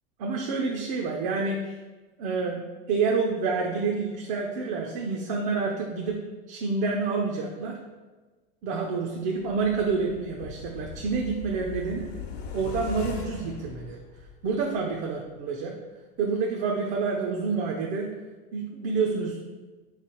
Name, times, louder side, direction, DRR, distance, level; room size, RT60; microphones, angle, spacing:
voice 1, 0.2-1.7 2.2-2.6 2.9-6.2 6.5-7.8 8.6-12.1 12.5-14.0 14.4-15.7 16.2-18.1 18.5-19.4, right 4 dB, 60° right, 0 dB, 0.6 m, -28 dB
sound 1, 9.4-14.6 14.9-15.0, left 7 dB, 85° left, 0.9 m, -40 dB
3.4 x 3.3 x 4.4 m, 1.3 s
supercardioid pair, 135°, 31 cm